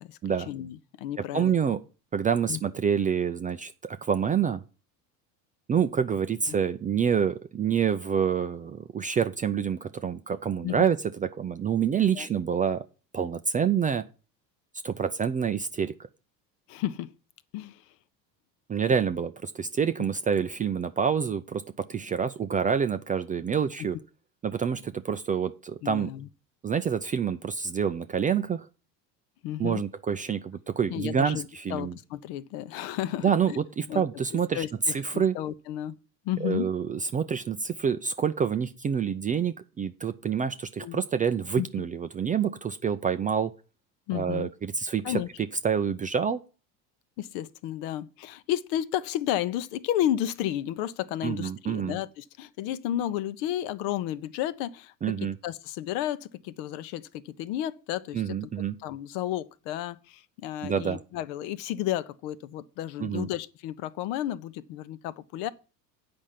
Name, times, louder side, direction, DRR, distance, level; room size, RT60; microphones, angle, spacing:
voice 1, 0.5-1.6 2.5-2.6 10.6-10.9 12.2-12.3 16.7-17.1 17.5-17.8 25.8-26.3 29.4-29.8 30.9-33.6 33.9-34.0 34.5-34.7 35.1-35.9 36.2-36.7 40.8-41.0 41.6-41.7 44.1-44.5 45.0-45.3 47.2-58.4 58.8-65.5, left 12 dB, 60° left, 0.8 m, -32 dB
voice 2, 1.3-1.8 2.1-4.6 5.7-12.8 13.1-14.0 14.8-16.1 18.7-24.0 24.4-26.1 26.6-28.7 29.6-32.0 33.2-35.4 36.4-43.5 44.1-45.2 45.6-46.4 51.2-52.0 55.0-55.4 58.1-58.8 60.6-61.0 63.0-63.3, right 7 dB, 20° right, 0.4 m, -27 dB
8.5 x 5.3 x 7.4 m
hypercardioid pair, 75°, 50 cm